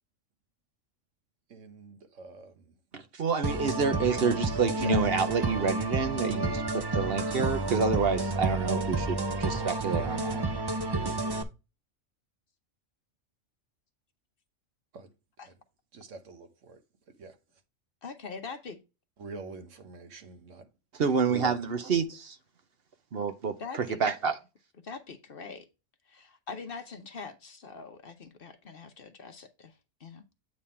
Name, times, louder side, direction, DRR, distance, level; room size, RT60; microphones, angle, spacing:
voice 1, 1.5-2.7 4.7-4.9 14.9-15.1 15.4-15.5 15.9-16.8 17.2-17.4 19.2-20.7 21.3-21.7, right 3 dB, 75° right, 1.4 m, -45 dB
voice 2, 2.9-10.4 20.9-22.4 23.1-24.3, right 5 dB, 55° right, 0.9 m, -28 dB
sound 1, 3.4-11.4, right 2 dB, 30° right, 0.4 m, -30 dB
voice 3, 18.0-18.8 23.6-24.0 24.8-25.7 26.1-30.2, left 4 dB, 50° left, 1.0 m, -43 dB
8.5 x 3.7 x 4.2 m
omnidirectional pair, 1.3 m